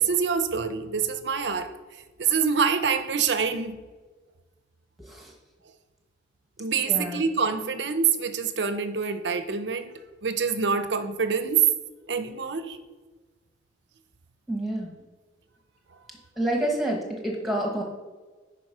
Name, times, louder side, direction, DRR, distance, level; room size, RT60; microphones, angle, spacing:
voice 1, 0.0-1.7 2.2-3.8 6.6-9.9 10.2-11.6 12.1-12.8, right 6 dB, 80° right, 10 dB, 0.7 m, -26 dB
voice 2, 6.8-7.2 14.5-14.9 16.4-17.8, right 1 dB, ahead, 0 dB, 1.1 m, -28 dB
9.4 x 4.2 x 5.5 m, 1.3 s
head